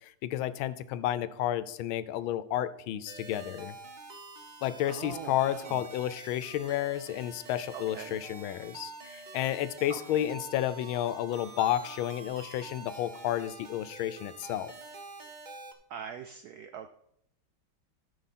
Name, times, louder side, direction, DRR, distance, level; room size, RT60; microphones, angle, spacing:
voice 1, 0.0-3.7 4.6-14.7, left 12 dB, 85° left, 15 dB, 1.4 m, -31 dB
sound 1, 3.1-15.7, right 3 dB, 60° right, 0.5 m, -47 dB
voice 2, 4.8-5.8 7.7-8.2 9.9-10.3 15.9-16.9, right 8 dB, 80° right, 8 dB, 0.8 m, -43 dB
13.0 x 6.0 x 4.2 m, 0.74 s
omnidirectional pair, 2.2 m